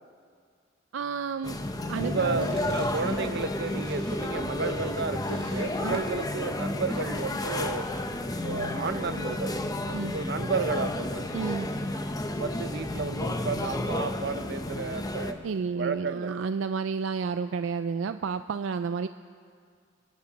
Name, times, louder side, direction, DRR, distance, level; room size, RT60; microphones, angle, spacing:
voice 1, 0.9-1.6 1.9-2.5 5.8-6.0 9.9-10.1 11.3-11.7 15.4-19.1, right 5 dB, 80° right, 11 dB, 0.4 m, -31 dB
sound 1, 1.4-15.3, left 1 dB, 20° left, 0.9 m, -31 dB
voice 2, 2.0-7.9 8.4-9.5 9.8-11.3 12.3-15.4 15.7-16.4, right 4 dB, 60° right, 10 dB, 0.8 m, -32 dB
sound 2, 2.2-7.9, right 3 dB, 30° right, 2.5 m, -53 dB
28.0 x 11.5 x 4.1 m, 2.1 s
head